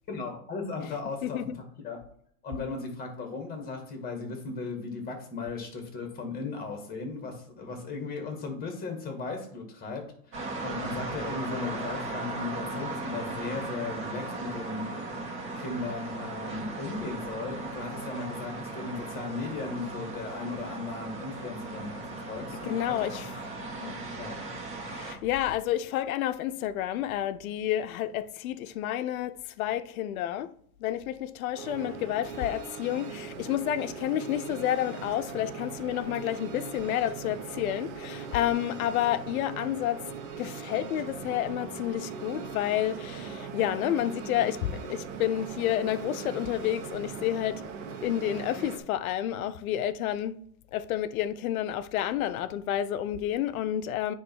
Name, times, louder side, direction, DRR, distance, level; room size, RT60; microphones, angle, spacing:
voice 1, 0.1-1.5 1.8-2.0 2.4-14.9 15.6-22.0 22.3-23.2 23.8-24.4, left 3 dB, 20° left, 1.9 m, -37 dB
voice 2, 1.2-1.5 22.6-23.3 23.8-24.0 24.9-30.5 30.8-40.0 40.4-47.6 48.0-50.4 50.7-54.1, left 12 dB, 65° left, 0.7 m, -30 dB
sound 1, 10.3-25.1, right 2 dB, 25° right, 1.9 m, -37 dB
sound 2, 31.5-48.8, right 5 dB, 70° right, 1.4 m, -40 dB
9.5 x 3.2 x 4.5 m
supercardioid pair, 145°, 47 cm